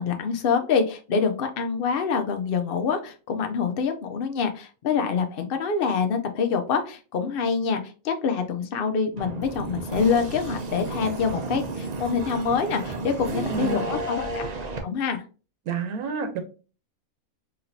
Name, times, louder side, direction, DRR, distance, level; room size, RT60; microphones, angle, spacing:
voice 1, 0.0-14.4 14.8-15.2, left 5 dB, 60° left, 6 dB, 0.6 m, -26 dB
sound 1, 9.2-14.8, right 2 dB, 50° right, 0.5 m, -32 dB
voice 2, 13.2-13.8 15.7-16.4, right 5 dB, 85° right, 7 dB, 1.3 m, -29 dB
4.4 x 2.9 x 2.6 m, 0.35 s
omnidirectional pair, 1.5 m